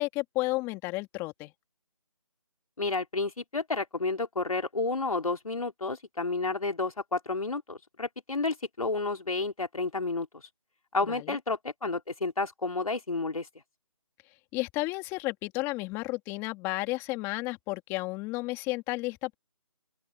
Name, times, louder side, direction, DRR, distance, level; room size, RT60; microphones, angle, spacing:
voice 1, 0.0-1.5 11.0-11.4 14.5-19.3, left 21 dB, 15° left, 2.4 m, -32 dB
voice 2, 2.8-10.3 10.9-13.5, left 3 dB, 80° left, 4.1 m, -31 dB
open air
figure-of-eight pair, 160°, 18 cm